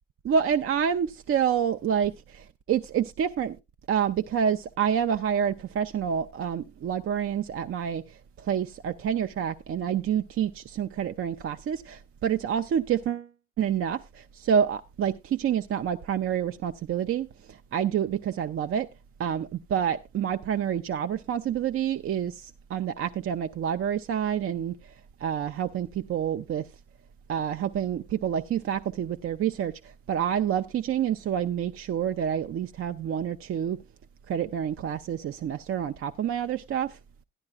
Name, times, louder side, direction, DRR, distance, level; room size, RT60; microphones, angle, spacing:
voice 1, 0.2-3.6 3.9-13.3 13.6-18.9 19.2-24.8 25.2-26.7 27.3-33.8 34.3-37.0, right 8 dB, 35° right, 0.5 m, -28 dB
14.0 x 10.5 x 2.3 m
figure-of-eight pair, 45°, 39 cm